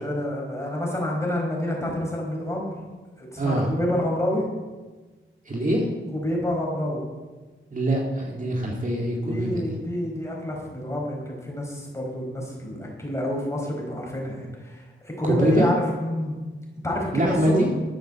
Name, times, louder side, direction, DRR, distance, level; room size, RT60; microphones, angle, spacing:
voice 1, 0.0-2.7 3.2-4.4 6.1-7.0 9.2-16.4 16.8-17.6, left 1 dB, 15° left, -2 dB, 4.6 m, -28 dB
voice 2, 3.4-3.7 5.5-5.9 7.7-9.6 15.2-15.7 17.1-17.7, right 1 dB, 40° right, -2 dB, 2.2 m, -24 dB
11.5 x 7.9 x 7.4 m, 1.3 s
wide cardioid pair, 110°, 21 cm